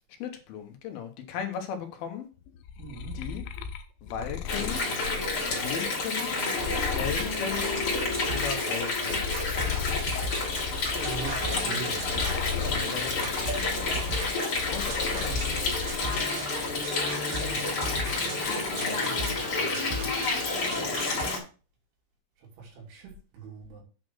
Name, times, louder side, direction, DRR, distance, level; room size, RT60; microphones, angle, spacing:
voice 1, 0.2-2.3 3.1-3.4 4.0-4.8 5.5-6.3 6.9-7.7 8.3-9.2 12.9-13.5 14.7-15.3, left 7 dB, 70° left, 2.6 m, -36 dB
sound 1, 2.5-8.7 9.0-16.0 16.4-17.1, left 6 dB, 90° left, 3.1 m, -37 dB
voice 2, 2.8-3.2 10.9-12.4 15.1-15.6 17.3-20.8 22.6-23.8, right 4 dB, 80° right, 4.9 m, -43 dB
Water, 4.5-21.4, left 3 dB, 35° left, 2.5 m, -29 dB
sound 2, 8.1-21.3, equal, 60° right, 3.1 m, -38 dB
8.8 x 4.2 x 6.2 m
omnidirectional pair, 5.3 m